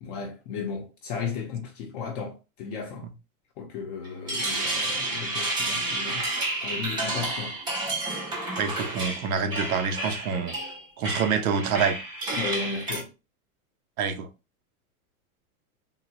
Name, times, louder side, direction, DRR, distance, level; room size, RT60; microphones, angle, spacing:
voice 1, 0.0-3.0 3.6-6.2 6.6-7.5 12.3-13.1, left 5 dB, 40° left, 0.6 m, -35 dB
sound 1, 4.0-13.0, right 2 dB, 10° right, 0.4 m, -30 dB
voice 2, 8.6-10.5 11.0-12.0 14.0-14.3, right 6 dB, 85° right, 0.8 m, -26 dB
3.7 x 2.3 x 2.7 m
supercardioid pair, 160°, 42 cm